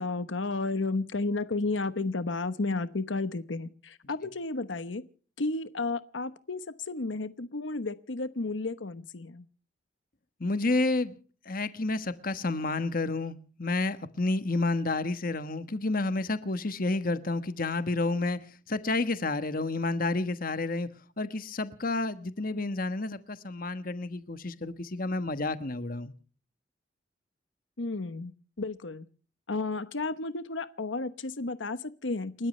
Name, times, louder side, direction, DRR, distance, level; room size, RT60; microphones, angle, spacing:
voice 1, 0.0-5.0 5.4-9.5 27.8-28.3 28.6-29.0 29.5-32.5, left 3 dB, 90° left, 1.1 m, -32 dB
voice 2, 10.4-11.1 11.5-18.4 18.7-20.9 21.2-26.1, left 2 dB, 50° left, 1.3 m, -30 dB
30.0 x 13.5 x 3.2 m
head